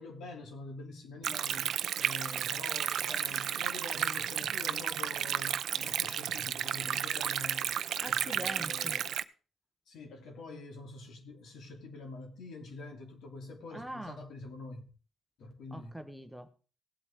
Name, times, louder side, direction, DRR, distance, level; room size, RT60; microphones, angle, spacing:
voice 1, 0.0-7.8 8.1-9.2 9.9-14.9 15.4-16.0, left 3 dB, 70° left, 2.8 m, -46 dB
Stream, 1.2-9.2, right 9 dB, 70° right, 0.5 m, -33 dB
voice 2, 8.0-9.0 13.7-14.2 15.7-16.5, right 1 dB, 5° right, 1.0 m, -43 dB
18.0 x 8.0 x 3.6 m
cardioid pair, 90°, 0 cm